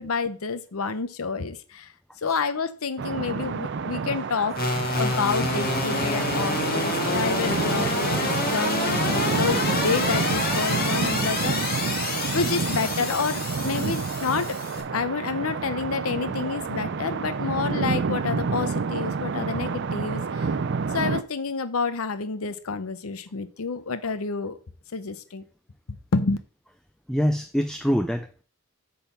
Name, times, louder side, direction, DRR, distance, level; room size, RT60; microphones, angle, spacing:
voice 1, 0.0-1.9 2.2-4.6 4.9-11.9 12.3-14.6 14.9-20.5 20.9-24.6 24.9-25.4 26.1-26.4, left 4 dB, 85° left, 0.7 m, -29 dB
sound 1, 3.0-21.2, right 4 dB, 55° right, 0.5 m, -29 dB
sound 2, 4.5-14.8, left 2 dB, 45° left, 2.2 m, -27 dB
voice 2, 27.1-28.4, equal, 5° left, 0.4 m, -25 dB
8.5 x 3.9 x 6.8 m
head